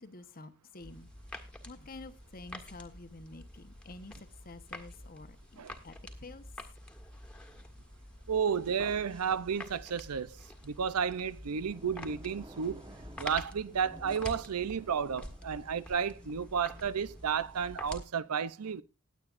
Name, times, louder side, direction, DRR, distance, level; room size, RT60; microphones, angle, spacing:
voice 1, 0.0-6.5, left 2 dB, 40° left, 1.1 m, -49 dB
sound 1, 0.8-18.1, left 1 dB, 5° left, 1.6 m, -48 dB
voice 2, 8.3-10.4 10.6-12.8 13.2-18.8, right 7 dB, 90° right, 0.6 m, -32 dB
sound 2, 11.5-18.1, right 1 dB, 20° right, 1.2 m, -54 dB
19.5 x 8.6 x 2.5 m
head